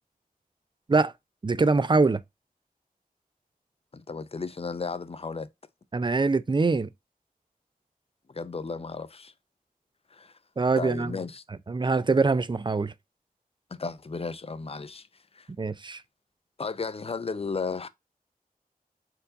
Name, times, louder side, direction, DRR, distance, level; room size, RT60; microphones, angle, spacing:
voice 1, 1.4-2.2 5.9-6.9 10.6-11.2 11.7-12.9 15.6-16.0, right 3 dB, 30° right, 0.4 m, -23 dB
voice 2, 3.9-5.5 8.3-9.3 10.1-10.3 10.8-11.4 13.7-15.1 15.3-15.5 16.6-17.9, left 4 dB, 40° left, 0.5 m, -34 dB
4.6 x 3.9 x 2.5 m
wide cardioid pair, 50°, 15 cm